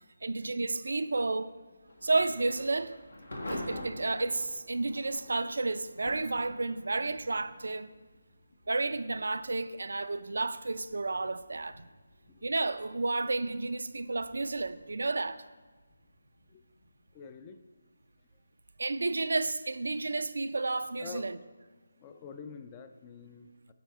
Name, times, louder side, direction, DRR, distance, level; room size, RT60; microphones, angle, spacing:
voice 1, 0.2-1.5 2.0-3.0 3.5-7.9 8.7-11.8 12.4-15.4 18.8-21.4, right 3 dB, 75° right, 0.4 m, -31 dB
Thunder / Rain, 1.8-18.6, left 1 dB, 85° left, 1.4 m, -48 dB
voice 2, 17.1-17.6 21.0-21.3 22.0-23.7, left 6 dB, 20° left, 0.3 m, -47 dB
9.2 x 4.2 x 4.7 m
figure-of-eight pair, 165°, 0 cm